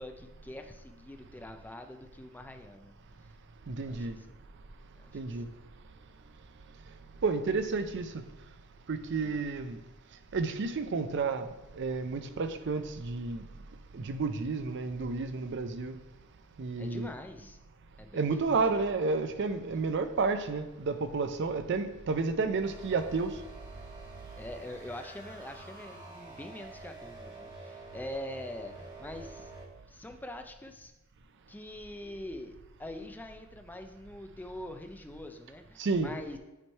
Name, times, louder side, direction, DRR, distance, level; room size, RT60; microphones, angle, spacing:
voice 1, 0.0-2.9 3.8-4.3 4.9-5.4 9.2-9.4 16.8-17.6 18.0-18.9 19.7-19.8 24.4-29.5 29.9-30.9 31.5-36.4, left 1 dB, 10° left, 0.4 m, -44 dB
voice 2, 3.7-4.2 5.1-5.5 7.2-8.2 8.9-9.8 10.3-11.5 11.7-13.5 13.9-15.9 16.6-17.1 18.1-23.4 35.8-36.1, right 4 dB, 55° right, 0.5 m, -31 dB
sound 1, 22.6-29.7, right 3 dB, 20° right, 1.5 m, -48 dB
8.8 x 3.2 x 4.5 m
head